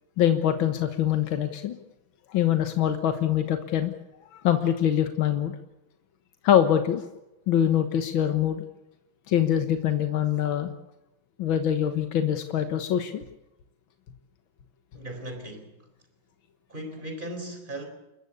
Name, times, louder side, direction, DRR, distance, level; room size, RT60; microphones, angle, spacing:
voice 1, 0.2-1.8 2.3-3.9 4.3-5.5 6.4-7.1 7.5-8.6 9.3-10.7 11.4-13.2, left 10 dB, 85° left, 8 dB, 2.0 m, -24 dB
voice 2, 14.9-15.9 16.7-17.9, right 1 dB, 25° right, 5 dB, 4.2 m, -37 dB
30.0 x 13.5 x 8.4 m, 0.95 s
omnidirectional pair, 2.1 m